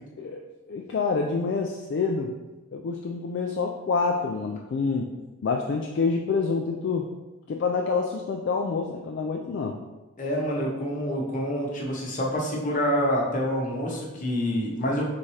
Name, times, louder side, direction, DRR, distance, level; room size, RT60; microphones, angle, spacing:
voice 1, 0.7-2.3 2.7-5.1 5.4-7.1 7.5-9.8, left 4 dB, 55° left, 2 dB, 0.3 m, -27 dB
voice 2, 10.2-15.0, equal, 35° left, -2 dB, 0.9 m, -27 dB
4.2 x 3.6 x 3.2 m, 1.1 s
head